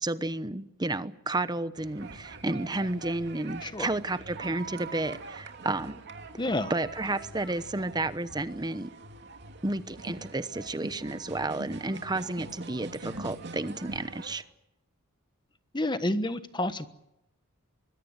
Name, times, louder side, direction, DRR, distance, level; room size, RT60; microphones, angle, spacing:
voice 1, 0.0-6.0 6.7-8.9 9.6-14.4, right 2 dB, 20° right, 13 dB, 0.9 m, -32 dB
sound 1, 1.8-14.4, right 3 dB, 50° right, 2.7 m, -44 dB
voice 2, 6.4-6.7 15.7-16.9, left 1 dB, 20° left, 11 dB, 1.3 m, -29 dB
24.0 x 21.5 x 8.0 m, 0.84 s
head